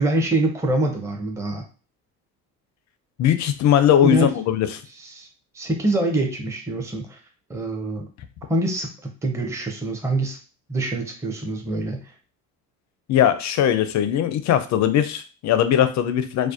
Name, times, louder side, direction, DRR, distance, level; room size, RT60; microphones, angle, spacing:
voice 1, 0.0-1.6 4.0-4.3 5.0-5.3 5.5-7.2 7.5-8.1 8.5-8.9 9.2-10.4 10.7-12.1, right 2 dB, 5° right, 2 dB, 0.5 m, -24 dB
voice 2, 3.2-4.8 13.1-16.5, left 10 dB, 40° left, 11 dB, 0.4 m, -20 dB
2.4 x 2.1 x 2.4 m, 0.36 s
hypercardioid pair, 65°, 45 cm